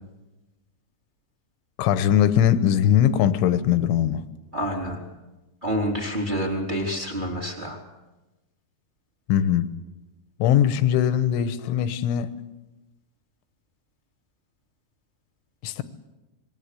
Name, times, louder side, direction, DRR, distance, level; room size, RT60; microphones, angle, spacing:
voice 1, 1.8-4.2 9.3-9.7 10.4-12.3 15.6-15.8, left 10 dB, 75° left, 3.4 m, -20 dB
voice 2, 4.5-5.0 5.6-7.8, equal, 10° right, 2.8 m, -27 dB
26.0 x 21.5 x 8.4 m
omnidirectional pair, 5.8 m